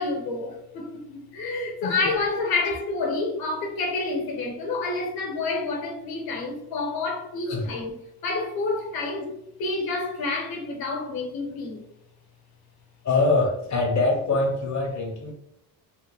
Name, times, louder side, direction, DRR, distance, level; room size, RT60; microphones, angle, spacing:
voice 1, 0.0-8.0 8.2-11.9, left 3 dB, 75° left, 1.1 m, -29 dB
voice 2, 13.0-15.3, left 3 dB, 50° left, 0.8 m, -24 dB
3.5 x 2.2 x 3.0 m
cardioid pair, 135°, 37 cm